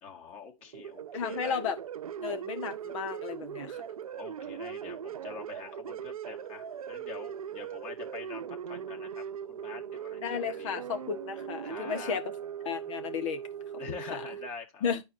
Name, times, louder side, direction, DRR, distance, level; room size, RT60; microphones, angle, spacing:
voice 1, 0.0-1.6 4.0-10.8 11.6-12.2 13.8-14.8, left 6 dB, 40° left, 1.9 m, -45 dB
sound 1, 0.7-14.5, right 9 dB, 80° right, 0.6 m, -40 dB
voice 2, 1.1-1.8 2.2-3.8 10.2-12.2 12.6-13.4 13.9-14.2 14.8-15.0, left 7 dB, 65° left, 1.4 m, -33 dB
11.0 x 4.6 x 2.7 m
hypercardioid pair, 105°, 18 cm